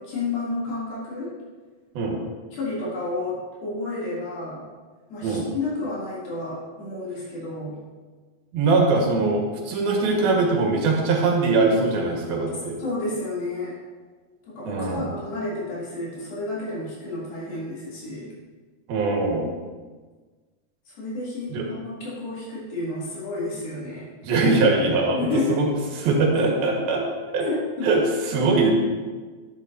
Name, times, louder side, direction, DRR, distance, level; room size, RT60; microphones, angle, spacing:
voice 1, 0.0-1.3 2.5-4.6 5.1-7.8 12.8-13.8 14.5-18.3 20.9-24.1 25.1-25.6 26.4-26.5 27.4-27.9, left 2 dB, 80° left, -8 dB, 4.8 m, -30 dB
voice 2, 8.5-12.8 14.7-15.2 18.9-19.5 21.5-21.7 24.2-25.7 26.0-27.1 27.3-27.5 27.8-28.7, right 3 dB, 85° right, 0 dB, 3.4 m, -22 dB
10.5 x 10.0 x 2.7 m, 1.4 s
omnidirectional pair, 4.2 m